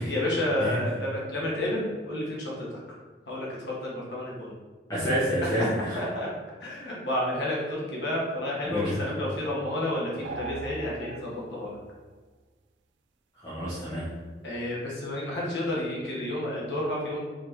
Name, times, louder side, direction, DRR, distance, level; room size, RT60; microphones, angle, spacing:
voice 1, 0.0-2.7 3.3-4.5 5.9-6.3 6.6-11.8 14.4-17.2, left 1 dB, 75° left, -4 dB, 1.1 m, -30 dB
voice 2, 4.9-6.0 8.6-9.0 13.4-14.1, equal, 20° left, -10 dB, 0.8 m, -29 dB
sound 1, 10.2-11.8, right 4 dB, 85° right, 0.3 m, -39 dB
4.3 x 3.2 x 2.8 m, 1.4 s
head